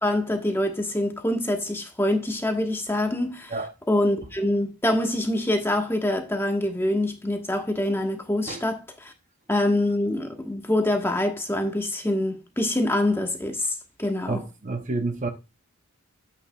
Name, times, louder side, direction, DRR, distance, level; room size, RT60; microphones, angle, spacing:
voice 1, 0.0-3.5 3.9-9.1 9.5-14.4, left 1 dB, 10° left, 1.3 m, -25 dB
voice 2, 14.3-15.3, right 3 dB, 35° right, 0.7 m, -29 dB
9.7 x 8.4 x 2.3 m
head